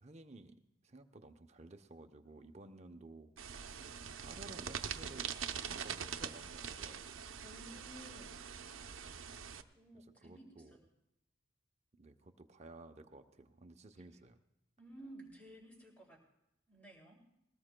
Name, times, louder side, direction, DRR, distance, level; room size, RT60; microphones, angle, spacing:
voice 1, 0.0-0.6 0.8-3.3 3.6-3.9 4.2-5.3 5.7-7.2 9.0-9.3 9.9-10.8 12.0-14.4, right 2 dB, 35° right, 6 dB, 0.7 m, -55 dB
sound 1, 3.4-9.6, right 7 dB, 75° right, 0.6 m, -43 dB
voice 2, 7.4-8.4 9.7-10.8 14.8-16.2 16.7-17.2, right 1 dB, 10° left, -2 dB, 2.5 m, -55 dB
21.0 x 18.5 x 2.2 m, 0.84 s
head